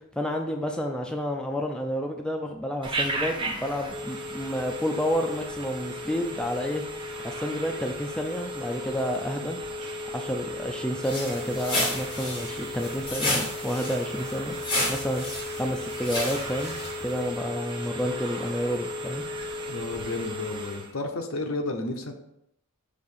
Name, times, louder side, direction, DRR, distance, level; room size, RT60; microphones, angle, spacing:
voice 1, 0.1-6.8 7.2-9.6 10.1-15.3 15.5-16.8 17.0-19.2, equal, 5° left, 2 dB, 0.4 m, -30 dB
Telephone, 2.8-20.9, equal, 20° right, 0.8 m, -35 dB
sound 1, 11.0-17.2, left 1 dB, 20° left, 1.6 m, -32 dB
voice 2, 19.7-22.1, left 2 dB, 65° left, 4 dB, 0.8 m, -32 dB
6.3 x 2.9 x 5.4 m, 0.80 s
head